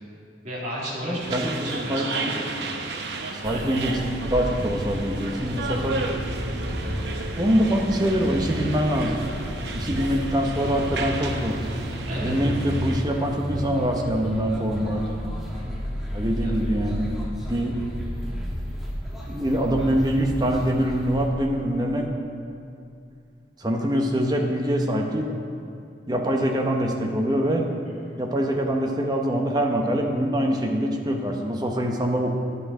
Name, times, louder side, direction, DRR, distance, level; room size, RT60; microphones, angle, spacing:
voice 1, 0.4-2.0 3.5-3.7 12.1-12.3 15.5-15.9 16.4-16.5 27.8-28.2, equal, 40° right, -7 dB, 2.2 m, -34 dB
voice 2, 1.0-2.4 3.4-6.0 7.3-9.2 9.7-11.6 12.1-15.2 16.1-17.1 17.5-17.8 19.3-22.1 23.6-25.4 26.1-27.6 28.2-32.4, equal, 20° right, 1 dB, 0.9 m, -24 dB
sound 1, 1.2-13.0, right 3 dB, 70° right, 0.8 m, -33 dB
sound 2, 3.4-21.3, equal, ahead, 1.4 m, -32 dB
10.5 x 9.1 x 4.9 m, 2.5 s
head